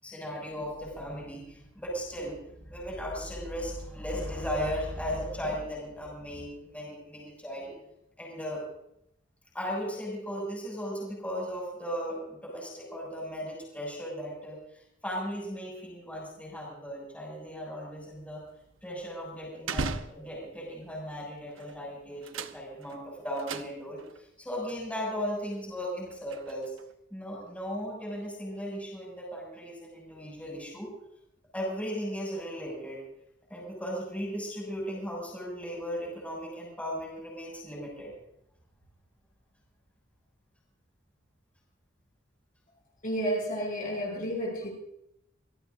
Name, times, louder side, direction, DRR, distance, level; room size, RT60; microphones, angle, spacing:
voice 1, 0.0-2.4 2.6-7.7 8.2-8.6 9.5-18.4 18.8-26.7 27.1-30.9 31.5-33.0 33.5-38.1, equal, 5° left, -3 dB, 6.5 m, -36 dB
sound 1, 18.0-20.7 21.4-21.8 22.1-24.2 24.7-24.8 25.4-26.9, right 4 dB, 85° right, 0.9 m, -39 dB
voice 2, 43.0-44.7, equal, 45° left, -2 dB, 6.3 m, -31 dB
26.0 x 18.5 x 2.6 m, 0.78 s
head